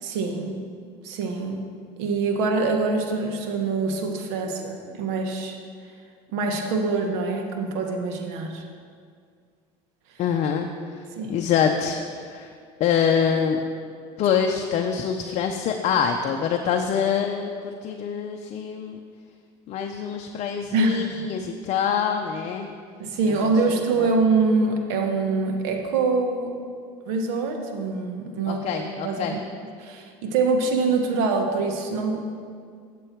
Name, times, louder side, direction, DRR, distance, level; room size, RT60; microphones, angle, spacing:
voice 1, 0.0-0.6 1.0-1.7 2.0-5.6 6.3-8.6 11.2-11.4 20.7-21.2 23.0-26.5 27.1-29.5 29.8-32.2, right 3 dB, 85° right, 3 dB, 1.2 m, -25 dB
voice 2, 10.2-10.7 11.0-11.1 11.3-12.5 12.8-13.6 14.2-19.0 19.7-22.7 23.3-23.4 24.0-24.1 28.5-29.4, left 7 dB, 55° left, 4 dB, 0.6 m, -25 dB
8.3 x 7.5 x 4.5 m, 2.1 s
cardioid pair, 115°, 14 cm